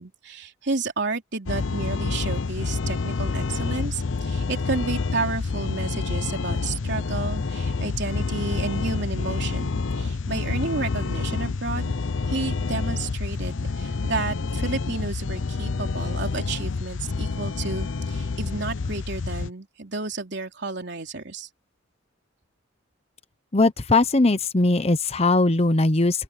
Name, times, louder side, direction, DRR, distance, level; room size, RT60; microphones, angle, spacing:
voice 1, 0.0-11.9 12.3-21.5, right 3 dB, 60° right, 3.6 m, -31 dB
sound 1, 1.5-19.5, left 4 dB, 70° left, 0.6 m, -28 dB
voice 2, 23.5-26.2, left 2 dB, 30° left, 0.9 m, -20 dB
open air
head